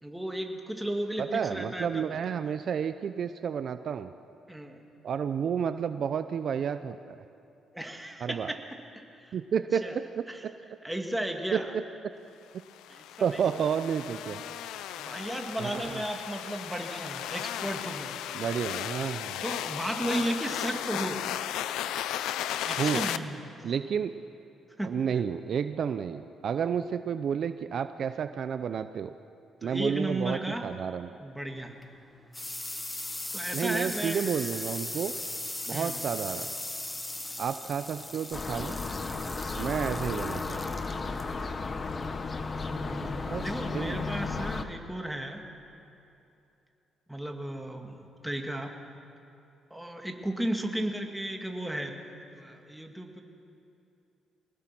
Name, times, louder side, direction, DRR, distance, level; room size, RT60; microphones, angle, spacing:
voice 1, 0.0-2.2 4.5-4.8 7.7-8.6 9.1-9.4 9.8-10.0 10.3-10.4 10.8-11.7 12.9-13.4 15.0-18.2 19.4-21.2 22.7-23.6 24.8-24.9 29.6-30.7 31.2-31.7 33.3-34.2 35.7-36.0 42.6-45.5 47.1-48.7 49.7-53.2, right 1 dB, 5° right, 3 dB, 2.3 m, -34 dB
voice 2, 1.2-4.1 5.0-7.2 8.2-8.5 9.3-9.9 10.2-10.5 11.5-11.6 13.2-14.4 15.6-16.0 18.3-19.4 22.8-23.1 23.6-24.1 24.8-29.1 29.6-31.1 33.5-35.1 35.7-36.5 37.4-38.8 39.5-40.6 43.3-43.4 43.7-44.1, right 7 dB, 60° right, 10 dB, 0.7 m, -31 dB
sound 1, 12.7-23.2, left 11 dB, 90° left, 0.6 m, -35 dB
sound 2, 31.6-42.9, left 1 dB, 15° left, 1.3 m, -39 dB
sound 3, 38.3-44.6, left 4 dB, 35° left, 1.3 m, -34 dB
24.0 x 19.5 x 6.1 m, 2.7 s
cardioid pair, 90°, 0 cm